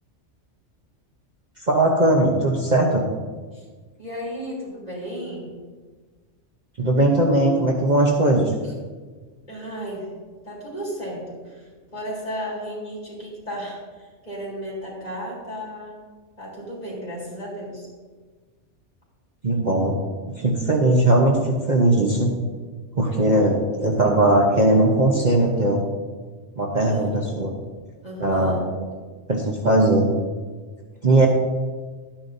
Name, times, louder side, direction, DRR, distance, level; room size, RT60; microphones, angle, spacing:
voice 1, 1.7-3.1 6.8-8.5 19.4-20.0 20.4-22.3 23.0-25.8 26.6-27.5 28.2-28.6 29.3-30.1 31.0-31.3, right 1 dB, 40° right, -1 dB, 1.0 m, -19 dB
voice 2, 4.0-5.5 8.6-8.7 9.5-10.1 10.4-16.0 16.4-17.9 23.1-23.3 26.8-27.3 28.0-28.6, equal, 35° left, -6 dB, 3.6 m, -34 dB
12.5 x 10.0 x 2.7 m, 1.4 s
omnidirectional pair, 1.2 m